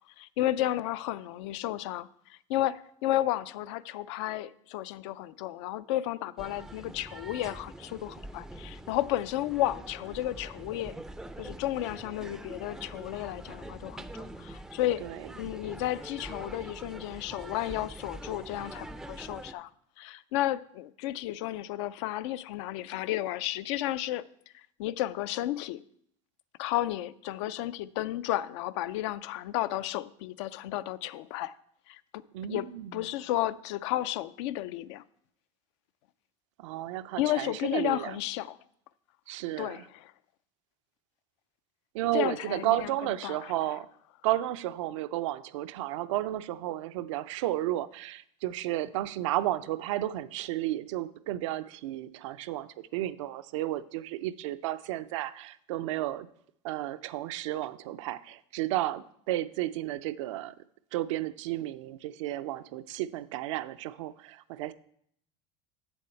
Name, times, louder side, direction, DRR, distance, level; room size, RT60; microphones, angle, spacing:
voice 1, 0.2-10.9 11.4-15.0 15.4-19.7 20.0-24.2 24.8-25.8 26.6-31.6 31.9-32.0 32.5-32.7 32.9-35.0 37.2-38.6 39.6-40.1 42.1-43.5, left 14 dB, 70° left, 0.4 m, -32 dB
sound 1, 6.4-19.5, right 1 dB, 5° right, 0.3 m, -44 dB
voice 2, 15.0-15.5 32.3-33.1 36.6-38.2 39.3-39.9 41.9-43.9 44.2-56.3 56.6-60.5 60.9-64.7, right 14 dB, 80° right, 0.4 m, -33 dB
7.7 x 7.0 x 4.4 m
supercardioid pair, 120°, 16 cm